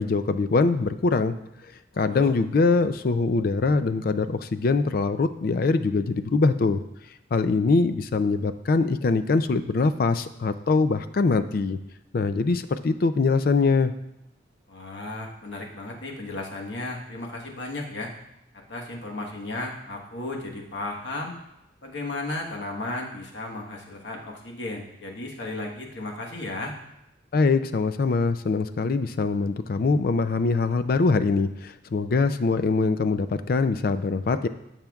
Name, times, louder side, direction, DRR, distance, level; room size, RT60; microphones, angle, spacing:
voice 1, 0.0-1.4 2.0-6.8 7.3-11.8 12.1-13.9 27.3-34.5, left 3 dB, 50° left, 12 dB, 0.4 m, -23 dB
voice 2, 1.9-2.3 14.7-18.1 18.5-21.3 21.8-26.8, left 2 dB, 75° left, 0 dB, 1.3 m, -34 dB
14.0 x 5.8 x 2.3 m, 0.86 s
head